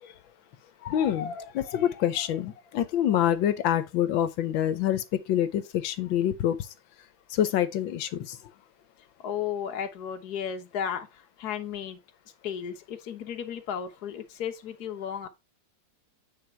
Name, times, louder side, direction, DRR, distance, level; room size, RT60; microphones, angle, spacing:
voice 1, 0.8-6.7 7.3-8.4, left 10 dB, 80° left, 1.6 m, -26 dB
voice 2, 9.2-12.0 12.4-15.3, left 8 dB, 55° left, 1.6 m, -34 dB
8.6 x 4.2 x 4.4 m
omnidirectional pair, 2.1 m